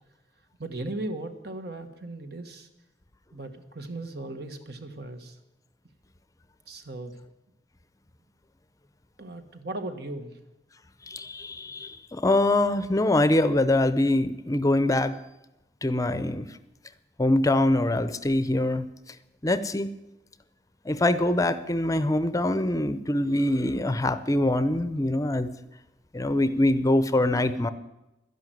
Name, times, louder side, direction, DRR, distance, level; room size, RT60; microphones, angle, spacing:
voice 1, 0.6-2.7 3.3-5.4 6.7-7.2 9.2-10.4, right 2 dB, 65° right, 7 dB, 1.7 m, -37 dB
voice 2, 11.1-15.2 15.8-16.4 17.2-18.8 19.4-19.9 20.9-25.5 26.1-27.7, left 1 dB, 20° left, 13 dB, 0.7 m, -24 dB
12.5 x 11.0 x 9.3 m, 0.93 s
head